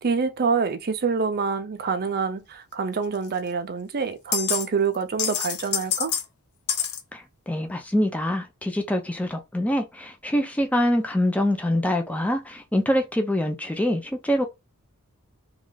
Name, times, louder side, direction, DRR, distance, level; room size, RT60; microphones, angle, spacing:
voice 1, 0.0-6.1, right 5 dB, 45° right, 0.5 m, -26 dB
sound 1, 3.3-3.4 4.3-4.7 4.9-6.3 6.7-7.0, left 8 dB, 70° left, 0.6 m, -26 dB
voice 2, 7.1-14.5, left 1 dB, 5° left, 0.5 m, -25 dB
3.2 x 2.4 x 3.8 m
head